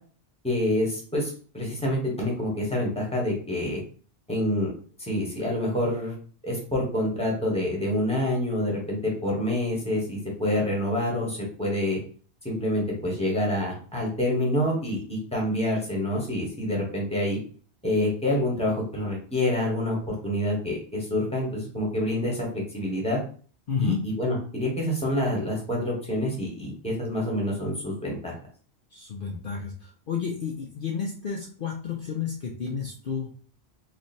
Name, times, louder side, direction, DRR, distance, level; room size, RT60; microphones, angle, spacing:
voice 1, 0.4-3.8 4.3-4.7 5.0-6.1 6.4-12.0 12.4-17.4 17.8-23.2 23.8-28.3, left 1 dB, 5° left, -2 dB, 1.2 m, -27 dB
voice 2, 23.7-24.0 28.9-33.3, left 6 dB, 60° left, -1 dB, 0.8 m, -31 dB
3.2 x 2.5 x 4.2 m, 0.42 s
omnidirectional pair, 1.1 m